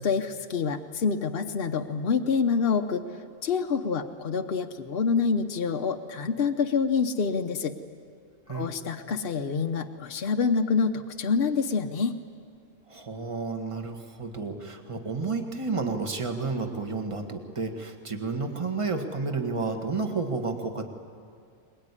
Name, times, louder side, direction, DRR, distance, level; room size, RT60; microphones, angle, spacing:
voice 1, 0.0-3.0 3.4-7.7 8.5-12.2, left 5 dB, 50° left, 4 dB, 1.0 m, -27 dB
voice 2, 12.9-20.9, right 4 dB, 25° right, 5 dB, 1.7 m, -31 dB
22.5 x 21.5 x 9.8 m, 2.3 s
omnidirectional pair, 1.4 m